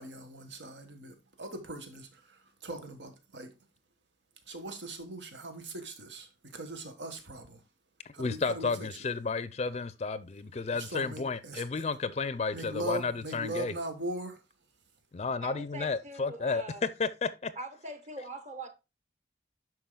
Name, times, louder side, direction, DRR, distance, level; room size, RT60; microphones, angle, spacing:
voice 1, 0.0-3.5 4.5-7.6 8.1-8.9 10.7-11.6 12.5-14.4, right 1 dB, 90° right, 1.5 m, -40 dB
voice 2, 8.2-13.7 15.1-16.6 17.0-17.5, left 4 dB, 35° left, 0.4 m, -32 dB
voice 3, 15.4-16.8 17.6-18.7, right 2 dB, 40° right, 1.2 m, -42 dB
11.5 x 4.7 x 2.2 m
head